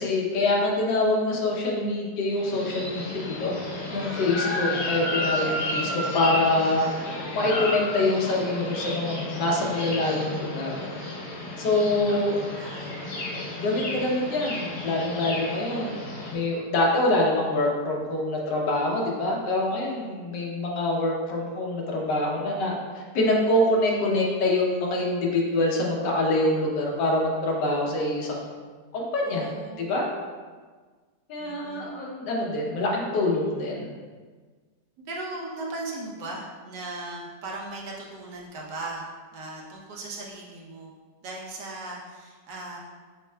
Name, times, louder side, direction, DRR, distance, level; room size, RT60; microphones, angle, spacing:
voice 1, 0.0-3.5 3.9-10.8 11.6-12.4 13.5-16.0 16.3-28.5 28.9-29.5 29.8-30.1 31.3-33.9, left 2 dB, 75° left, -1 dB, 1.4 m, -25 dB
sound 1, 2.4-16.3, left 1 dB, 50° left, 0.9 m, -32 dB
voice 2, 12.6-13.0 29.2-29.9 31.4-32.0 35.0-40.9 41.2-42.8, right 2 dB, 80° right, -2 dB, 1.4 m, -38 dB
6.5 x 3.6 x 2.2 m, 1.5 s
omnidirectional pair, 1.9 m